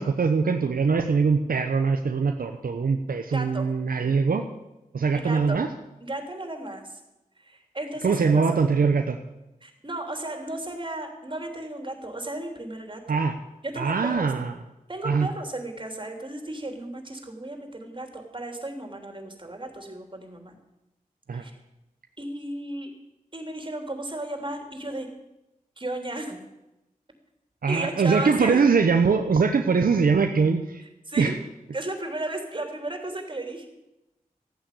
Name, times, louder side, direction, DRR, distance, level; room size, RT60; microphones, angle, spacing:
voice 1, 0.0-4.5 4.9-5.7 8.0-9.2 13.1-13.3 13.8-14.6 15.0-15.3 21.3-21.4 27.6-30.8 31.2-31.3, right 5 dB, 80° right, 5 dB, 1.0 m, -22 dB
voice 2, 3.3-3.7 5.1-5.6 6.0-7.0 7.4-8.2 9.6-13.2 13.6-14.3 14.9-20.6 21.3-21.5 22.2-22.9 23.3-25.1 25.8-26.4 27.7-28.6 31.1-31.4 31.7-33.7, right 1 dB, 35° right, 4 dB, 3.3 m, -34 dB
14.0 x 9.1 x 8.5 m, 0.94 s
cardioid pair, 50°, 15 cm